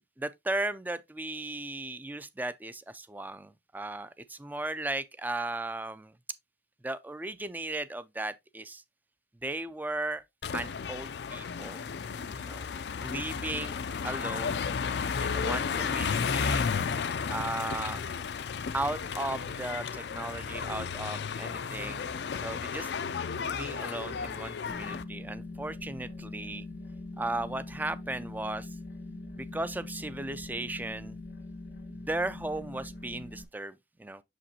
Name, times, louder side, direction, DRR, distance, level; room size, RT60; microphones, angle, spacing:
voice 1, 0.2-6.1 6.8-8.8 9.4-10.2 10.5-11.8 12.4-12.6 13.0-14.6 15.2-16.7 17.3-18.0 18.7-22.1 22.4-22.9 23.3-26.6 27.2-28.8 29.4-31.2 32.1-34.2, right 2 dB, 10° right, 0.4 m, -36 dB
sound 1, 10.4-25.0, left 6 dB, 65° left, 0.4 m, -33 dB
sound 2, 24.7-33.4, left 2 dB, 90° left, 1.3 m, -42 dB
6.8 x 5.1 x 2.8 m
head